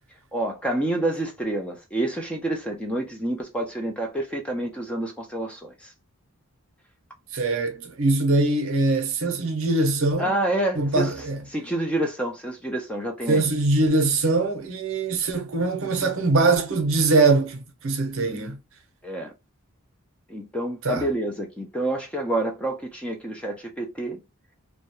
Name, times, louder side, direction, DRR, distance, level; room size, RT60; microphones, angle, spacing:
voice 1, 0.3-5.9 10.2-11.1 11.5-13.5 19.0-19.3 20.3-24.2, right 1 dB, 5° left, 0.4 m, -28 dB
voice 2, 7.3-10.3 10.8-11.4 13.3-18.6 20.8-21.1, right 3 dB, 65° right, 0.6 m, -22 dB
2.3 x 2.0 x 2.9 m
head